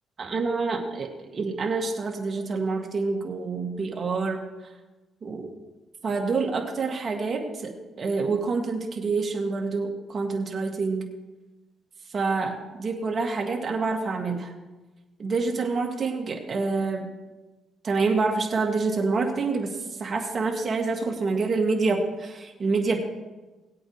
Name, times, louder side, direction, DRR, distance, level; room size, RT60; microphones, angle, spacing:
voice 1, 0.2-4.4 5.2-5.5 6.0-11.1 12.1-14.5 15.2-17.1 17.8-23.0, right 4 dB, 45° right, 1 dB, 2.3 m, -27 dB
19.0 x 8.5 x 3.2 m, 1.2 s
cardioid pair, 90°, 0 cm